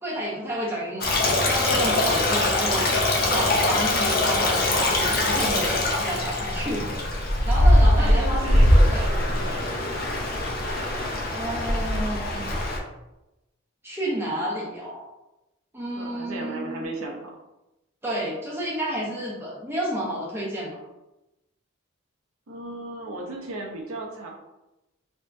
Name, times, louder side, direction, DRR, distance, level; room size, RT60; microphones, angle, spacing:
voice 1, 0.0-2.9 3.3-9.1 11.3-12.5 13.8-15.1 15.7-16.9 18.0-20.8, equal, 10° right, -6 dB, 0.7 m, -31 dB
Stream, 1.0-12.8, left 1 dB, 45° left, 0.5 m, -22 dB
voice 2, 1.7-2.3 7.9-9.8 16.0-17.3 22.5-24.3, right 2 dB, 85° right, 0 dB, 0.7 m, -35 dB
3.5 x 2.6 x 2.3 m, 0.96 s
head